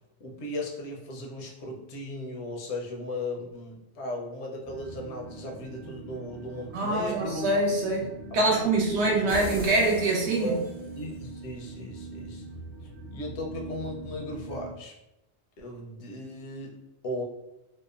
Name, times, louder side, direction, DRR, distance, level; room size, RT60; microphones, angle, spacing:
voice 1, 0.2-7.5 8.3-8.7 9.0-9.3 10.4-10.6 11.0-12.4 13.1-14.9 15.6-17.2, left 1 dB, 80° left, 1 dB, 0.9 m, -36 dB
sound 1, 4.6-14.7, right 2 dB, 65° right, 0.8 m, -43 dB
voice 2, 6.7-8.1 8.3-10.5, right 2 dB, 90° right, -2 dB, 1.0 m, -24 dB
sound 2, 9.3-11.1, left 1 dB, 10° right, 0.5 m, -38 dB
2.8 x 2.0 x 2.3 m, 0.91 s
omnidirectional pair, 1.1 m